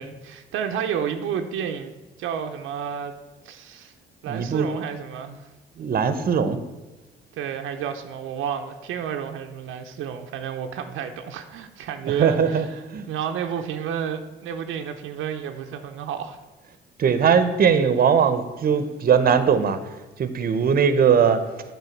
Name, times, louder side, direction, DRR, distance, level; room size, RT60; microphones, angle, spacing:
voice 1, 0.0-1.9 2.2-3.1 3.4-3.9 4.2-5.5 7.3-12.7 13.1-16.4, right 8 dB, 85° right, 0.6 m, -31 dB
voice 2, 4.3-4.7 5.8-6.6 12.2-12.7 12.9-13.1 17.0-19.8 20.2-21.4, right 7 dB, 50° right, 0.7 m, -20 dB
8.0 x 4.5 x 5.8 m
cardioid pair, 90°, 20 cm